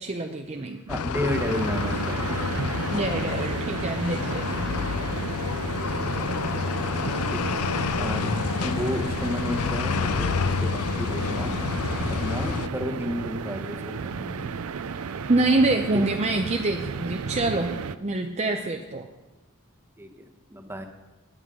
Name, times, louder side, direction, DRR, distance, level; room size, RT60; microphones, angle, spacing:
voice 1, 0.0-0.8 2.9-4.7 15.3-17.7 18.0-19.1, right 2 dB, 30° right, 4 dB, 0.6 m, -26 dB
voice 2, 0.6-2.2 7.3-8.3 8.6-11.5 12.1-14.5 15.9-16.1 20.0-20.9, equal, 10° right, 4 dB, 1.0 m, -32 dB
sound 1, 0.9-12.7, left 5 dB, 75° left, 0.5 m, -28 dB
sound 2, 1.3-18.0, right 5 dB, 70° right, 0.5 m, -33 dB
17.0 x 9.9 x 3.7 m, 1.1 s
head